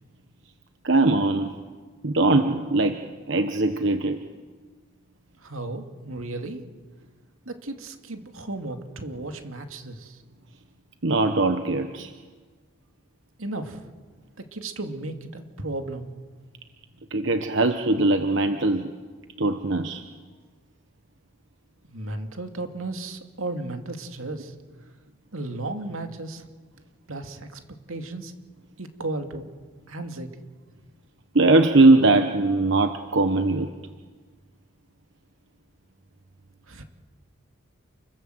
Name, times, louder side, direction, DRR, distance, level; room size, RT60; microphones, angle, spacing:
voice 1, 0.8-1.5 2.0-3.0 3.3-4.2 11.0-12.1 17.1-18.9 19.4-20.0 31.3-33.7, right 2 dB, 60° right, 7 dB, 1.2 m, -20 dB
voice 2, 5.4-6.6 7.5-10.2 13.4-13.9 14.4-16.1 21.9-24.5 25.3-26.5 27.1-27.6 27.9-28.3 28.8-29.5 29.9-30.4 36.7-36.8, right 2 dB, 85° right, 5 dB, 2.5 m, -34 dB
29.0 x 21.5 x 8.0 m, 1.5 s
head